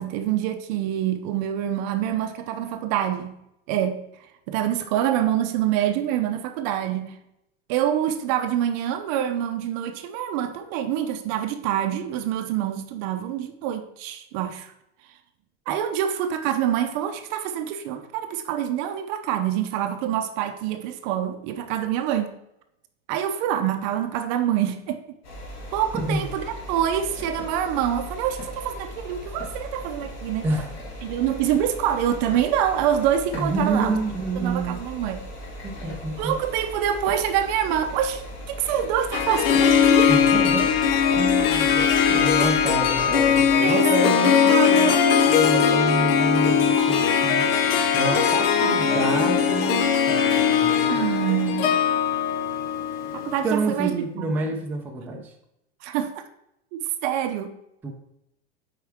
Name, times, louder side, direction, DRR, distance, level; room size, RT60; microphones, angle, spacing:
voice 1, 0.0-3.4 3.7-4.0 4.5-7.1 7.7-14.7 15.7-22.3 23.1-25.0 25.7-30.4 31.0-34.0 34.4-35.2 36.2-40.1 43.6-43.9 44.5-45.8 48.1-48.8 50.9-51.8 53.1-53.9 54.2-54.4 55.8-56.2 56.7-57.5, right 10 dB, 45° right, 8 dB, 0.7 m, -26 dB
sound 1, 25.2-43.5, equal, 85° left, 2.8 m, -38 dB
voice 2, 25.9-26.3 30.4-30.7 33.3-34.8 35.6-36.3 40.1-40.7 41.1-44.9 45.2-51.0 53.4-55.3 57.8-57.9, right 2 dB, 5° right, 0 dB, 0.5 m, -28 dB
Harp, 39.1-53.6, left 7 dB, 70° left, 0.9 m, -20 dB
7.9 x 4.8 x 3.5 m, 0.82 s
supercardioid pair, 160°, 30 cm